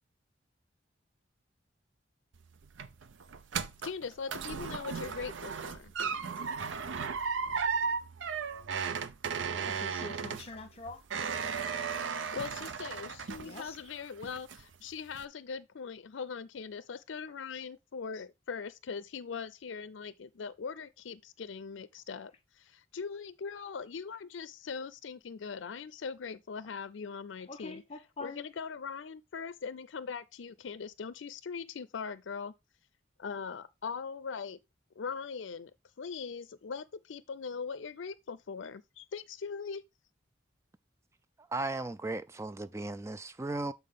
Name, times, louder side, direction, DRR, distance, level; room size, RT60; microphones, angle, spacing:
sound 1, 2.3-13.9 14.2-14.8 15.1-15.3, right 6 dB, 85° right, 0.6 m, -35 dB
voice 1, 3.8-5.9 12.3-27.8 28.2-32.5 33.2-34.6 35.0-35.7 36.0-39.8, left 5 dB, 85° left, 0.5 m, -41 dB
voice 2, 9.6-11.0 12.2-12.3 13.4-13.9 27.5-28.4, left 3 dB, 30° left, 1.1 m, -45 dB
voice 3, 41.4-43.7, right 2 dB, 15° right, 0.4 m, -36 dB
8.5 x 4.1 x 3.6 m
head